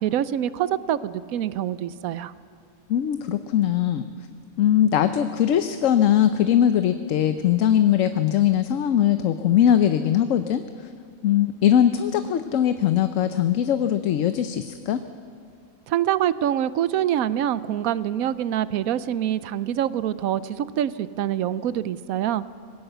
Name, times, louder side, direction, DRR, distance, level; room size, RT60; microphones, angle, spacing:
voice 1, 0.0-2.3 15.9-22.4, right 11 dB, 80° right, 16 dB, 1.1 m, -25 dB
voice 2, 2.9-4.0 4.6-10.9 11.2-15.0, left 10 dB, 70° left, 10 dB, 1.0 m, -21 dB
20.5 x 17.0 x 7.9 m, 2.4 s
omnidirectional pair, 1.5 m